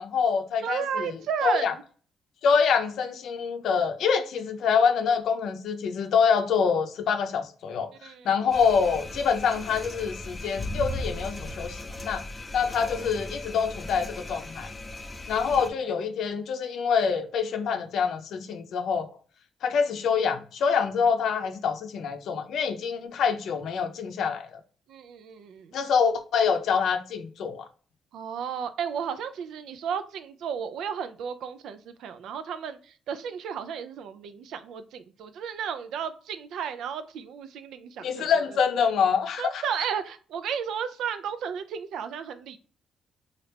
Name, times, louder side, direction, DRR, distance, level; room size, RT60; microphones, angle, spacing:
voice 1, 0.0-1.1 1.4-1.7 2.4-12.2 12.5-14.7 15.3-19.1 19.6-24.6 25.7-27.7 38.0-39.6, left 6 dB, 75° left, 0.5 m, -26 dB
voice 2, 0.6-1.7 8.0-8.3 24.9-25.7 28.1-38.3 39.4-42.6, right 7 dB, 80° right, 0.4 m, -33 dB
sound 1, 8.5-15.7, left 1 dB, 20° left, 0.6 m, -37 dB
3.1 x 2.4 x 3.3 m
cardioid pair, 90°, 0 cm